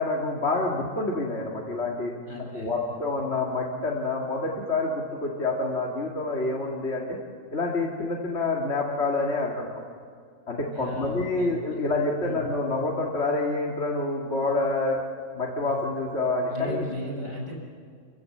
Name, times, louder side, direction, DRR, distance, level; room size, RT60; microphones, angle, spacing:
voice 1, 0.0-2.1 2.5-7.2 7.5-9.8 10.5-15.0 15.3-16.8, left 2 dB, 50° left, -2 dB, 2.5 m, -27 dB
voice 2, 2.3-2.7 10.7-11.8 12.2-12.5 16.5-17.6, left 1 dB, 80° left, -2 dB, 6.9 m, -35 dB
29.0 x 16.0 x 7.7 m, 2.1 s
omnidirectional pair, 1.4 m